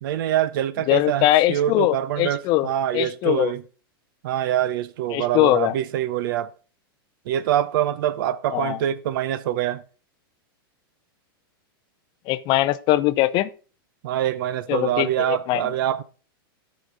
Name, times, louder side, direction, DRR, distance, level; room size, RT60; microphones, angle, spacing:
voice 1, 0.0-3.6 4.2-6.5 7.3-9.8 14.0-16.0, right 11 dB, 65° right, 0.7 m, -25 dB
voice 2, 0.9-2.7 2.9-3.5 5.1-5.7 8.5-8.8 12.3-13.5 14.7-15.7, left 16 dB, 35° left, 0.5 m, -21 dB
13.0 x 5.1 x 3.9 m
supercardioid pair, 140°, 12 cm